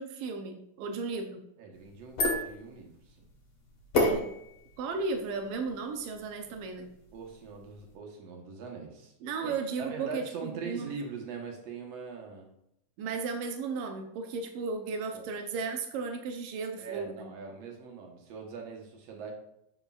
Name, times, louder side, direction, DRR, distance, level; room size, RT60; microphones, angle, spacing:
voice 1, 0.0-1.4 3.9-4.3 4.8-6.9 9.2-10.9 13.0-17.3, right 4 dB, 85° right, 5 dB, 1.3 m, -35 dB
voice 2, 1.6-3.3 7.1-9.1 9.4-9.5 9.8-12.5 15.1-15.3 16.8-19.3, right 5 dB, 60° right, 1 dB, 2.1 m, -42 dB
sound 1, 1.7-7.9, left 1 dB, 50° left, 2.2 m, -34 dB
8.0 x 6.9 x 2.4 m, 0.78 s
omnidirectional pair, 3.6 m